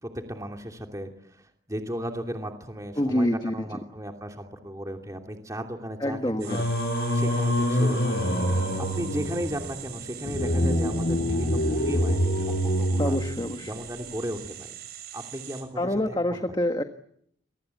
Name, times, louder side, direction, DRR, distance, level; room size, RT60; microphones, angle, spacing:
voice 1, 0.0-6.7 7.1-8.2 8.8-13.2 13.7-14.7 15.1-16.4, equal, 20° right, 3 dB, 2.9 m, -35 dB
voice 2, 3.0-3.5 6.0-6.6 13.0-13.7 15.8-16.8, left 1 dB, 25° left, 6 dB, 1.5 m, -26 dB
sound 1, 6.4-15.6, right 11 dB, 55° right, 7.1 m, -43 dB
Singing, 6.5-13.8, equal, 60° left, 6.1 m, -26 dB
29.5 x 23.5 x 8.5 m, 0.70 s
head